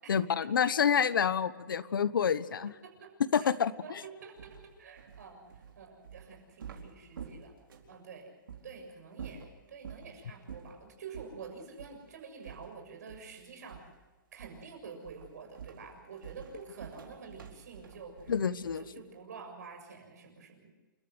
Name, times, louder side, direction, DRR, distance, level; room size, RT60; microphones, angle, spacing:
voice 1, 0.1-2.7 3.3-4.0 18.3-18.8, left 7 dB, 80° left, 15 dB, 1.2 m, -28 dB
voice 2, 2.8-3.1 3.4-3.5 3.8-7.5 7.9-13.8 14.3-18.3 18.6-20.7, right 5 dB, 50° right, 3 dB, 6.8 m, -48 dB
sound 1, 4.4-8.0 8.5-8.7 9.1-10.1 10.5-10.8 11.1-11.4 11.8-12.0 12.4-13.4 13.7-14.0 14.4-14.7 15.0-19.0, right 7 dB, 85° right, 4.7 m, -48 dB
29.5 x 13.5 x 8.1 m, 1.3 s
hypercardioid pair, 175°, 11 cm